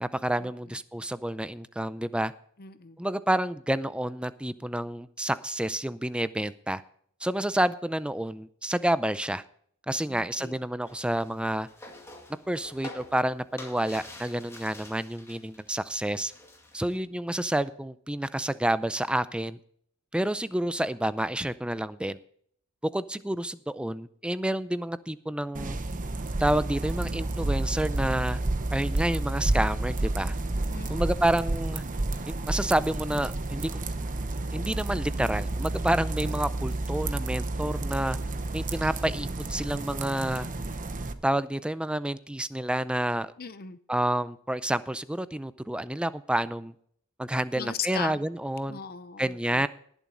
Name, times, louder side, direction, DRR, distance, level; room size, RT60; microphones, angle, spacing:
voice 1, 0.0-2.3 3.0-6.8 7.2-9.4 9.9-11.7 12.5-16.3 16.7-19.6 20.1-22.2 22.9-25.8 26.4-28.4 28.7-30.3 30.9-31.8 32.3-33.8 34.5-38.2 38.5-40.5 41.2-43.3 43.9-46.7 47.2-48.8 49.2-49.7, right 1 dB, 5° right, 15 dB, 0.4 m, -29 dB
voice 2, 2.6-3.0 10.1-10.6 16.9-17.1 30.7-31.1 43.4-43.8 47.5-48.2 48.7-49.6, left 7 dB, 45° left, 12 dB, 0.7 m, -38 dB
sound 1, 10.8-15.7 16.0-17.0, left 2 dB, 10° left, 2.1 m, -47 dB
sound 2, 25.5-41.1, right 2 dB, 35° right, 0.9 m, -30 dB
19.5 x 7.2 x 3.8 m, 0.62 s
head